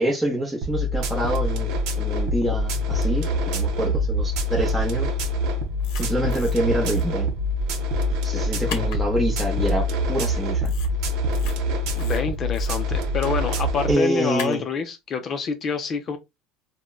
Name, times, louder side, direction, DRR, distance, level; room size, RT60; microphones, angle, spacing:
voice 1, 0.0-1.7 2.0-3.2 3.5-5.1 6.0-7.3 8.2-10.7 13.9-14.6, right 1 dB, 5° right, 0.8 m, -26 dB
sound 1, 0.6-13.9, left 1 dB, 65° right, 0.6 m, -25 dB
sound 2, 5.8-6.6 6.8-7.0 8.7-9.0 10.6-10.9 11.3-11.5 12.0-12.7 14.4-14.6, left 6 dB, 80° left, 0.7 m, -37 dB
voice 2, 11.9-16.2, left 5 dB, 40° left, 0.5 m, -27 dB
3.6 x 2.1 x 2.3 m
supercardioid pair, 115°, 0 cm